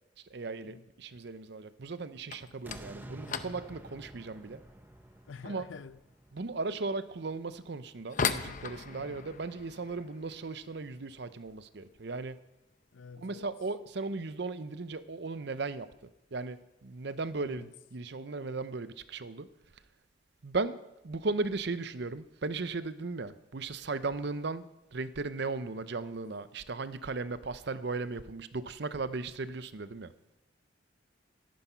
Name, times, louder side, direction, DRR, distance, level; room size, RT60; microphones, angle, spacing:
voice 1, 0.3-4.6 5.4-5.7 6.3-12.4 13.2-15.9 16.3-19.5 20.4-20.8 21.0-24.7 24.9-30.1, right 3 dB, 60° right, 0.7 m, -36 dB
sound 1, 2.2-13.0 13.2-13.8 14.1-14.4 14.7-14.8 15.5-15.6 16.5-16.7 17.1-17.5, left 6 dB, 45° left, 0.7 m, -41 dB
sound 2, 2.6-7.7 8.2-8.3, right 1 dB, 10° right, 0.6 m, -50 dB
voice 2, 5.3-6.0 8.9-9.3 12.9-13.5 17.4-17.7, left 5 dB, 85° left, 0.5 m, -48 dB
14.0 x 10.5 x 5.7 m
head